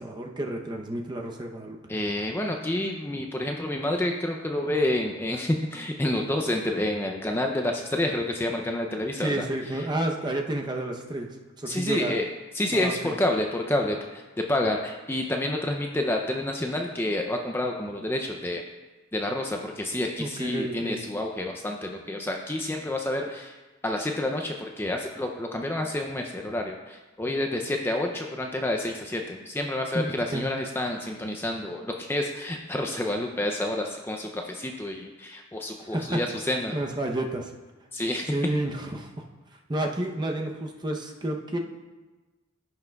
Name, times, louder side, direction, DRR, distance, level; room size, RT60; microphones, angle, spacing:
voice 1, 0.0-1.8 9.2-11.3 11.6-12.2 12.7-13.1 20.2-21.0 29.9-30.4 35.9-36.2 36.7-37.5 38.3-39.2 39.7-41.6, right 1 dB, 20° right, 2 dB, 0.7 m, -30 dB
voice 2, 1.9-9.9 11.7-12.3 12.5-14.2 14.5-18.6 19.1-23.6 23.8-36.8 37.9-38.3, left 1 dB, 10° left, 2 dB, 0.4 m, -29 dB
15.5 x 5.9 x 2.3 m, 1.2 s
head